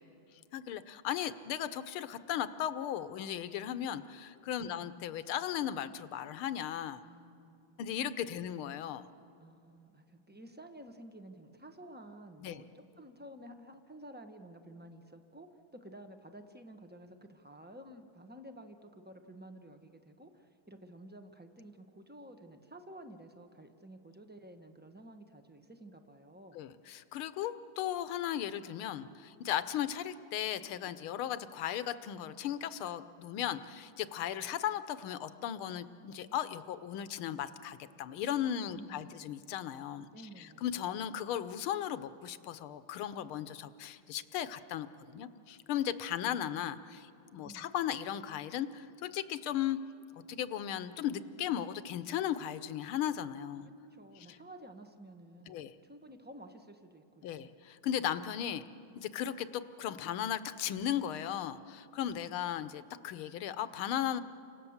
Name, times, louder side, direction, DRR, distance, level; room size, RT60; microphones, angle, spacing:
voice 1, 0.5-7.0 7.8-9.1 12.4-12.6 26.5-40.1 40.4-49.8 50.1-53.7 55.5-55.7 57.2-58.6 59.0-64.2, left 10 dB, 75° left, 13 dB, 1.6 m, -36 dB
voice 2, 7.0-7.8 9.4-26.6 38.7-39.2 40.1-40.6 47.4-47.7 53.6-57.6, right 1 dB, 15° right, 6 dB, 0.3 m, -52 dB
30.0 x 26.0 x 7.2 m, 2.7 s
omnidirectional pair, 2.4 m